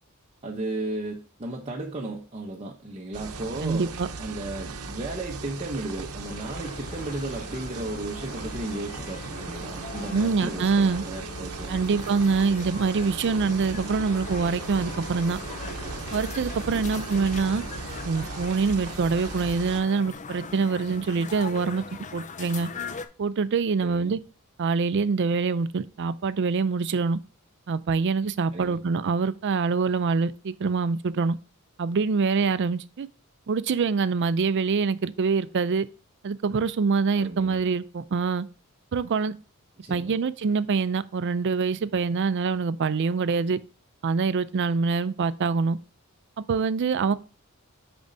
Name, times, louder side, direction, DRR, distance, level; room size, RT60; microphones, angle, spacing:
voice 1, 0.4-12.2 16.7-17.0 23.8-24.2 28.5-28.8 37.1-37.6 39.8-40.1, right 2 dB, 30° right, 0.8 m, -35 dB
sound 1, 3.1-19.8, right 3 dB, 75° right, 0.8 m, -37 dB
voice 2, 3.6-4.1 10.1-11.0 11.7-15.4 16.1-17.6 18.0-21.8 22.1-22.7 23.2-24.2 24.6-27.2 27.7-31.4 31.8-33.1 33.5-35.9 36.2-38.5 38.9-39.3 39.9-43.6 44.0-45.8 46.4-47.1, right 4 dB, 55° right, 0.4 m, -25 dB
sound 2, 6.2-23.1, left 5 dB, 35° left, 0.5 m, -41 dB
6.9 x 5.2 x 2.7 m
head